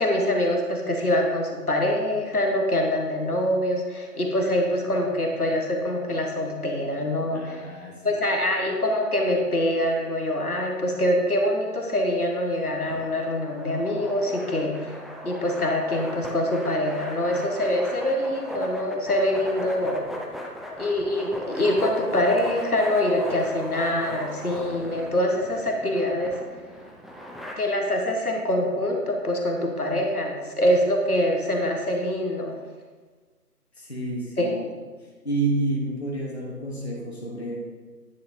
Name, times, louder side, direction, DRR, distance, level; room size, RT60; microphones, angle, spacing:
voice 1, 0.0-7.6 8.0-15.0 15.2-20.1 20.8-26.3 27.6-32.5 34.4-34.5, left 1 dB, 65° left, 2 dB, 1.2 m, -24 dB
voice 2, 7.3-8.2 33.8-34.7 35.2-37.7, right 2 dB, 40° left, -3 dB, 1.0 m, -29 dB
sound 1, 12.8-27.5, equal, ahead, 0.5 m, -37 dB
9.5 x 6.0 x 2.6 m, 1.4 s
figure-of-eight pair, 180°, 48 cm